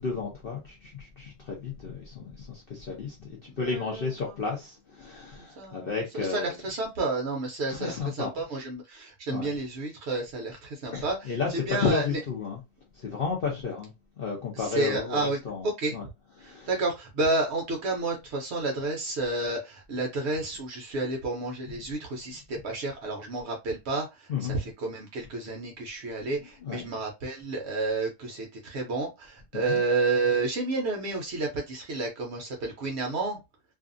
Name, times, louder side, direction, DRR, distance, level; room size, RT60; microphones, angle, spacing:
voice 1, 0.0-6.6 7.7-8.3 9.3-9.5 10.9-12.6 12.9-16.1 16.4-16.7 24.3-24.6 26.4-26.9 29.5-29.8, left 5 dB, 60° left, 0.6 m, -32 dB
voice 2, 3.7-4.1 5.4-5.9 6.1-11.3 11.7-12.0 14.6-15.4 15.6-15.9 16.4-33.4, right 3 dB, 60° right, 0.7 m, -30 dB
2.6 x 2.4 x 2.4 m
omnidirectional pair, 1.6 m